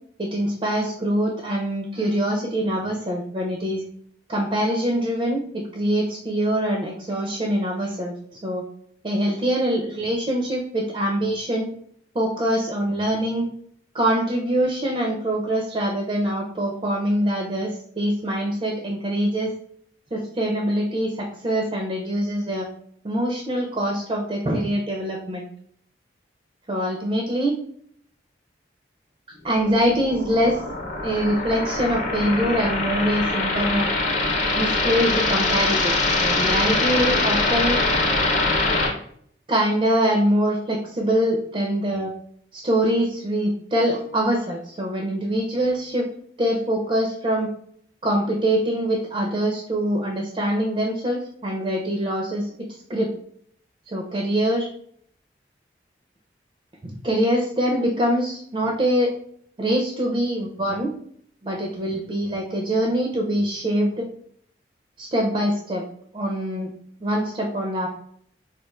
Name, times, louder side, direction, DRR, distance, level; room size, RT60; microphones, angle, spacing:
voice 1, 0.2-3.8 4.3-8.6 9.0-11.7 12.1-13.5 13.9-19.5 20.1-22.7 23.0-25.5 26.7-27.6 29.3-30.6 31.0-33.9 34.5-37.8 39.5-42.1 42.5-46.1 46.4-47.5 48.0-52.5 52.9-53.1 53.9-54.7 57.0-59.1 59.6-60.9 61.4-64.0 65.0-65.8 66.1-66.7 67.0-67.9, equal, 30° right, 1 dB, 0.4 m, -24 dB
sound 1, 29.6-38.9, left 2 dB, 40° left, 0.6 m, -23 dB
4.3 x 2.4 x 2.3 m, 0.64 s
head